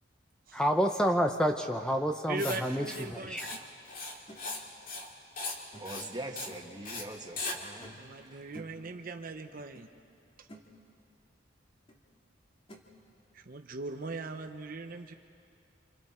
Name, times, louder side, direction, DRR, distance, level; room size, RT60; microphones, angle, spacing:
voice 1, 0.5-2.8 3.1-3.4, equal, 5° left, 4 dB, 0.7 m, -28 dB
voice 2, 2.3-3.6 7.9-9.9 10.4-10.5 13.3-15.1, right 3 dB, 50° right, 6 dB, 0.8 m, -40 dB
Writing, 2.4-2.6 2.9-3.1 3.4-3.6 3.9-4.6 4.9-5.1 5.4-5.6 5.9-6.1 6.4-6.5 6.9-7.0 7.4-7.6, left 3 dB, 50° left, 2.2 m, -38 dB
sound 1, 4.3-4.4 5.7-6.1 6.5-6.8 7.8-8.1 8.5-8.9 9.7-9.9 10.2-10.7 11.9-12.0 12.7-12.9, equal, 30° left, 2.2 m, -51 dB
voice 3, 5.8-8.0 8.2-8.4, right 2 dB, 25° right, 2 dB, 1.6 m, -42 dB
28.0 x 27.5 x 4.4 m, 2.5 s
head